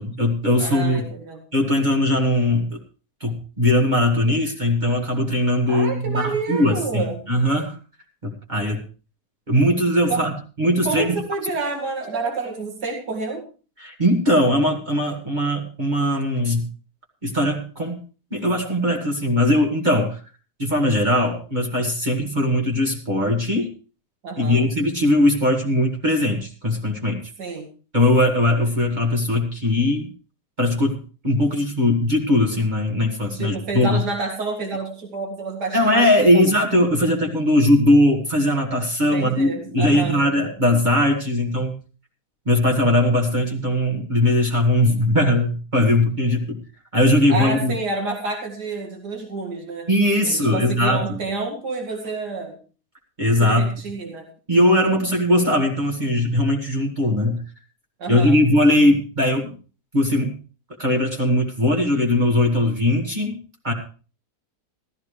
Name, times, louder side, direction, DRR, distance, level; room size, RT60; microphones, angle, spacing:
voice 1, 0.0-1.0 1.5-2.8 3.2-7.8 8.2-8.8 9.5-10.3 10.6-11.2 13.8-16.6 17.2-18.0 18.3-20.2 20.6-23.7 24.4-27.2 27.9-30.1 30.6-34.0 35.7-41.8 42.5-46.6 46.9-47.7 49.9-51.2 53.2-53.7 54.5-57.4 58.1-59.6 59.9-60.4 60.8-63.4 63.6-63.7, left 1 dB, 25° right, 0 dB, 1.8 m, -20 dB
voice 2, 0.6-1.4 5.7-7.3 10.1-10.2 10.8-13.4 24.2-24.7 27.4-27.7 33.3-36.5 39.0-40.2 47.3-49.9 50.2-52.6 53.4-54.3 58.0-58.4 63.7-63.8, right 3 dB, 70° right, 1 dB, 2.7 m, -29 dB
15.5 x 13.5 x 3.3 m, 0.36 s
omnidirectional pair, 1.8 m